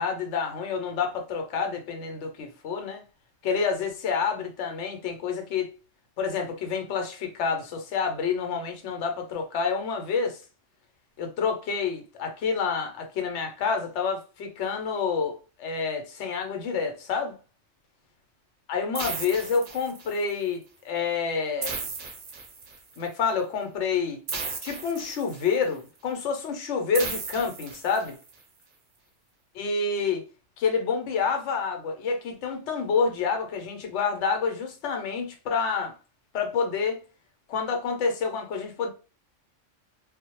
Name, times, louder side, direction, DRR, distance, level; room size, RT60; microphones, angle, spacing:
voice 1, 0.0-3.0 3.4-5.7 6.2-10.4 11.2-17.3 18.7-21.8 23.0-24.2 24.6-28.2 29.6-30.2 30.6-35.9 36.3-37.0 37.5-38.9, left 5 dB, 70° left, 0.9 m, -28 dB
sound 1, 18.9-20.3 21.6-23.0 24.3-25.6 26.9-28.3, right 4 dB, 55° right, 0.6 m, -35 dB
2.2 x 2.0 x 2.9 m
omnidirectional pair, 1.3 m